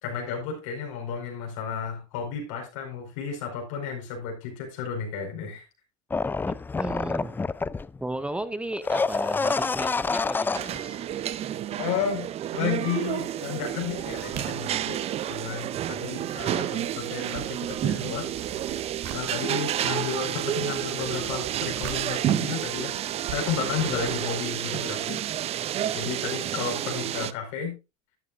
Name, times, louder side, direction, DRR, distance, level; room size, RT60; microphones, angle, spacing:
voice 1, 0.0-5.7 11.8-12.3 12.5-18.3 19.1-22.9 23.3-25.2 25.9-27.7, left 7 dB, 85° left, 2 dB, 4.7 m, -32 dB
sound 1, 6.1-8.0 8.7-10.8 11.1-11.2, left 4 dB, 15° left, 0.4 m, -27 dB
voice 2, 6.8-7.4 8.0-11.0, right 1 dB, 5° right, 12 dB, 0.7 m, -34 dB
sound 2, 10.5-27.3, right 11 dB, 40° right, 0.5 m, -30 dB
sound 3, 13.8-16.0 16.2-24.2, right 6 dB, 70° right, 2.3 m, -45 dB
12.0 x 9.5 x 2.5 m, 0.26 s
supercardioid pair, 115°, 16 cm